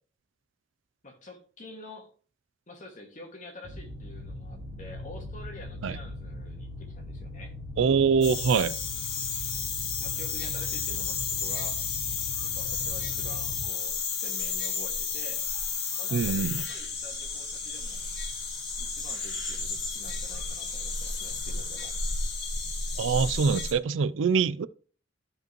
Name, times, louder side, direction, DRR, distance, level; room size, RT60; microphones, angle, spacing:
voice 1, 1.0-2.1 2.7-7.5 10.0-11.8 12.4-15.5 16.0-18.1 18.8-21.9, left 1 dB, 40° left, 2.0 m, -47 dB
sound 1, 3.6-13.6, left 1 dB, 45° right, 0.9 m, -40 dB
voice 2, 7.8-8.7 16.1-16.6 23.0-24.7, right 5 dB, 75° right, 0.4 m, -24 dB
sound 2, 8.2-23.7, left 5 dB, 60° left, 2.2 m, -32 dB
13.0 x 5.2 x 3.0 m
head